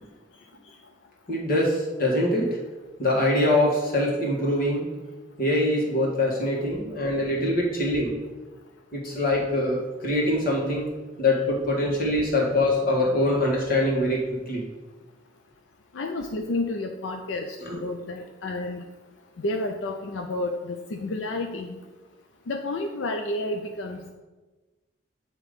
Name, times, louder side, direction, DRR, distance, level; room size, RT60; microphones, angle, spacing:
voice 1, 1.3-2.6 3.0-4.8 5.4-8.1 8.9-10.9 11.2-14.6 17.6-17.8, left 1 dB, 50° left, -2 dB, 1.6 m, -24 dB
voice 2, 15.9-18.8 19.4-21.7 22.5-24.1, left 2 dB, 85° left, 4 dB, 0.5 m, -30 dB
7.8 x 3.0 x 5.1 m, 1.2 s
head